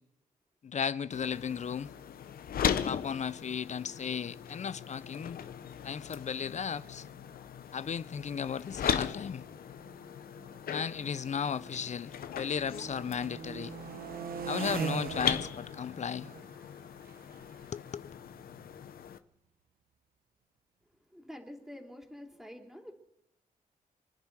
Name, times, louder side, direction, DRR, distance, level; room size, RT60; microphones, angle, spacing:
voice 1, 0.6-1.9 2.8-5.4 5.8-7.1 7.7-9.4 10.7-13.7 14.5-16.3 17.7-18.1, left 7 dB, 50° left, 0.6 m, -35 dB
sound 1, 1.1-19.2, left 8 dB, 75° left, 0.9 m, -39 dB
sound 2, 7.0-7.3 8.1-12.0 12.3-19.0, right 7 dB, 75° right, 1.1 m, -43 dB
voice 2, 21.1-22.9, left 1 dB, ahead, 3.4 m, -47 dB
28.0 x 10.5 x 4.8 m
cardioid pair, 85°, 15 cm